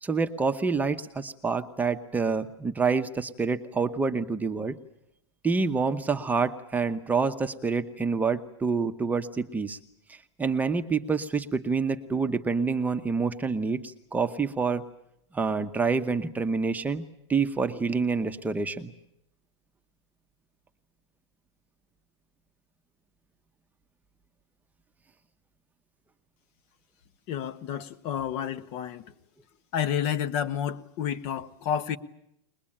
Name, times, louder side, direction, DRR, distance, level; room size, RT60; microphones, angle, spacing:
voice 1, 0.0-4.8 5.4-9.8 10.1-14.8 15.3-17.0 17.3-18.9, right 4 dB, 10° right, 1.0 m, -27 dB
voice 2, 27.3-29.0 29.7-32.0, left 9 dB, 45° left, 1.4 m, -30 dB
22.0 x 21.5 x 8.8 m
hypercardioid pair, 135°, 15 cm